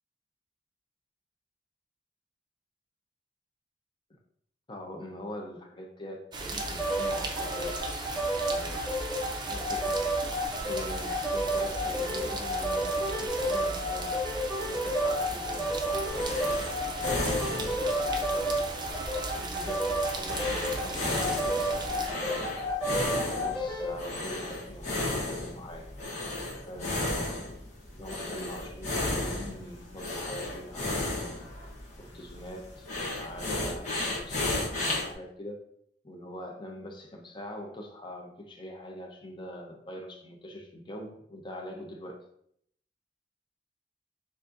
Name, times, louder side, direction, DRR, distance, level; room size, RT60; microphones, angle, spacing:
voice 1, 4.7-8.1 8.5-8.9 9.5-14.2 14.7-16.5 17.0-18.6 19.3-22.5 23.0-25.9 26.7-27.4 27.9-31.3 31.9-32.9 33.2-35.6 36.0-42.2, equal, 30° left, 2 dB, 0.7 m, -43 dB
sound 1, 6.3-22.1, right 2 dB, 25° right, 0.5 m, -37 dB
sound 2, 6.6-24.0, equal, 5° left, 1.2 m, -31 dB
sound 3, 15.6-35.1, left 2 dB, 45° left, 1.1 m, -34 dB
7.1 x 2.6 x 2.5 m, 0.70 s
head